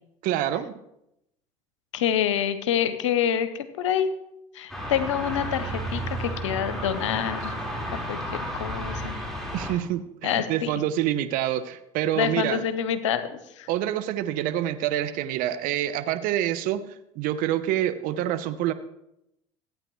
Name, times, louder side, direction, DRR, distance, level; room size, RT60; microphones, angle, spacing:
voice 1, 0.2-0.8 9.5-12.6 13.7-16.9 17.2-18.7, right 12 dB, 65° right, 11 dB, 0.7 m, -27 dB
voice 2, 1.9-4.1 4.5-7.5 8.1-9.2 10.2-10.7 12.2-13.7, left 9 dB, 90° left, 12 dB, 0.7 m, -27 dB
sound 1, 4.7-9.7, equal, ahead, 4.1 m, -32 dB
15.0 x 8.9 x 3.1 m, 0.83 s
hypercardioid pair, 70°, 15 cm